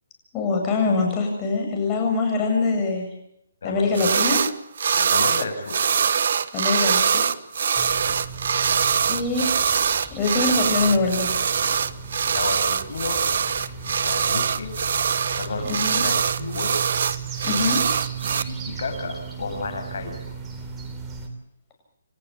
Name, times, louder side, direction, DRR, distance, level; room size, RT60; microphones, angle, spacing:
voice 1, 0.3-3.1 3.6-4.4 6.5-7.2 9.1-9.5 10.2-11.3 15.7-16.0 17.4-17.8, left 3 dB, 20° left, 2 dB, 7.7 m, -23 dB
voice 2, 3.6-4.1 4.8-5.8 12.3-13.2 13.8-14.8 15.4-16.8 18.4-20.4, left 3 dB, 65° left, 6 dB, 7.6 m, -32 dB
sound 1, 3.9-4.5 4.8-18.4, right 6 dB, 60° right, 1.2 m, -23 dB
sound 2, 7.8-21.3, right 6 dB, 10° right, 3.4 m, -36 dB
29.0 x 14.5 x 8.5 m, 0.78 s
hypercardioid pair, 160°, 0 cm